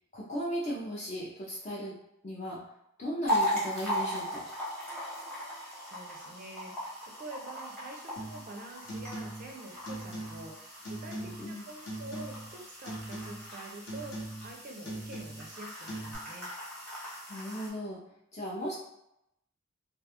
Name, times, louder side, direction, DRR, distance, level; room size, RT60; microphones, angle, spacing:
voice 1, 0.1-2.0 2.2-2.7 3.0-4.5 11.1-11.6 17.3-18.0 18.3-18.7, equal, 35° left, -6 dB, 0.4 m, -36 dB
sound 1, 3.3-17.7, equal, 5° left, 0.8 m, -38 dB
voice 2, 5.8-16.5, right 2 dB, 40° right, 1 dB, 0.4 m, -47 dB
sound 2, 8.2-8.5 8.8-9.5 9.8-10.5 10.8-11.5 11.9-12.6 12.8-13.5 13.9-14.5 14.8-15.5 15.9-16.1, right 1 dB, 60° left, 0.8 m, -41 dB
2.3 x 2.3 x 2.8 m, 0.80 s
head